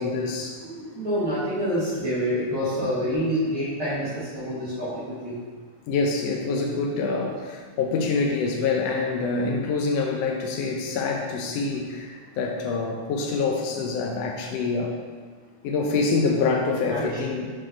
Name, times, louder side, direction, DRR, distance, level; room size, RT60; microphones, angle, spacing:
voice 1, 0.0-0.6 2.8-2.9 5.9-14.9 15.6-17.5, left 4 dB, 75° left, 1 dB, 1.5 m, -26 dB
voice 2, 0.6-5.4 16.8-17.2, equal, 50° right, -12 dB, 2.1 m, -27 dB
6.4 x 3.9 x 5.1 m, 1.5 s
omnidirectional pair, 3.5 m